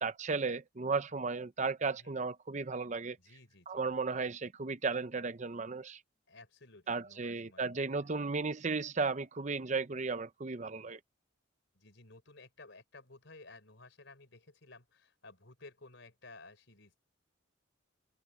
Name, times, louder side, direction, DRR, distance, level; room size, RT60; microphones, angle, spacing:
voice 1, 0.0-3.2 3.7-6.0 6.9-11.0, right 4 dB, 35° right, 0.7 m, -35 dB
voice 2, 1.8-2.2 3.2-3.9 6.3-7.8 11.7-17.0, left 3 dB, 65° left, 4.7 m, -55 dB
head